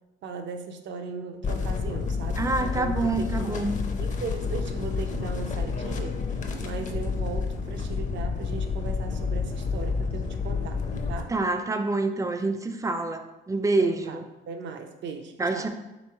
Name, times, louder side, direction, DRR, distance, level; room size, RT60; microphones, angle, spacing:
voice 1, 0.2-3.6 4.0-6.2 6.6-10.8 11.1-11.3 12.4-12.5 13.8-15.7, right 5 dB, 65° right, 6 dB, 0.5 m, -38 dB
sound 1, 1.4-11.2, left 5 dB, 40° left, 0.5 m, -29 dB
voice 2, 2.4-3.8 11.3-14.2 15.4-15.7, right 2 dB, 15° right, 7 dB, 0.4 m, -27 dB
3.5 x 3.1 x 4.5 m, 1.0 s
cardioid pair, 90°, 20 cm